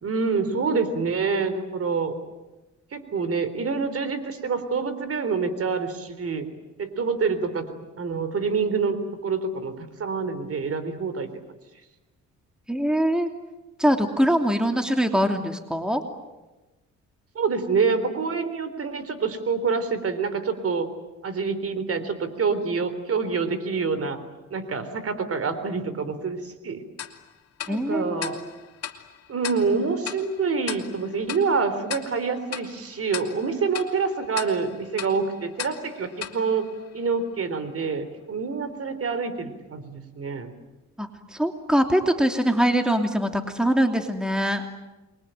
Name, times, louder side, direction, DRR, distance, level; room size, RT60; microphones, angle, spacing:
voice 1, 0.0-2.2 2.9-6.5 6.8-7.7 8.0-9.7 10.0-11.3 17.4-20.9 21.2-24.2 24.5-26.8 27.7-28.4 29.3-36.7 36.9-40.5, right 5 dB, 50° right, 12 dB, 3.8 m, -26 dB
voice 2, 12.7-13.3 13.8-16.0 27.7-28.4 41.0-44.6, equal, ahead, 5 dB, 2.9 m, -23 dB
Tick-tock, 27.0-37.4, left 9 dB, 55° left, 2.9 m, -39 dB
28.5 x 23.0 x 9.1 m, 1.1 s
cardioid pair, 90°, 30 cm